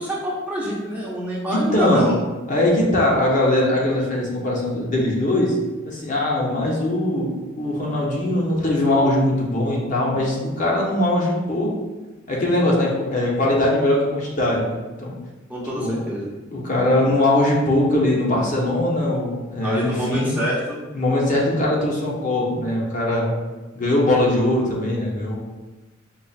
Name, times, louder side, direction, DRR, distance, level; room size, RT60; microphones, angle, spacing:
voice 1, 0.0-2.2 15.5-16.3 19.6-20.8, equal, 10° right, -7 dB, 0.7 m, -26 dB
voice 2, 1.5-2.1 2.5-5.6 5.8-11.7 12.3-15.1 15.8-15.9 16.5-20.3 20.9-23.3 23.8-25.4, left 1 dB, 40° left, -3 dB, 0.7 m, -21 dB
5.2 x 2.4 x 2.4 m, 1.2 s
head